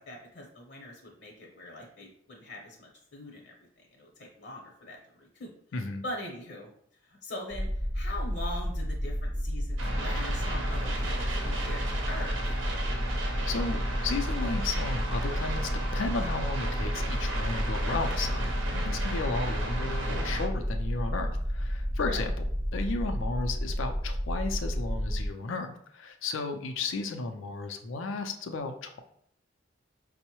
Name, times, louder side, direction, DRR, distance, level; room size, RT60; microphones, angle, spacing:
voice 1, 0.0-3.5 3.9-5.5 6.0-6.7 7.0-7.7 7.9-12.4 22.0-22.2, left 1 dB, 60° left, 0 dB, 0.8 m, -42 dB
voice 2, 5.7-6.0 13.5-22.3 22.7-29.0, left 3 dB, 90° left, 5 dB, 0.4 m, -34 dB
sound 1, 7.5-25.3, equal, 35° right, 0.5 m, -31 dB
sound 2, 9.8-20.5, right 2 dB, 90° right, 0.7 m, -36 dB
5.3 x 2.0 x 2.9 m, 0.67 s
head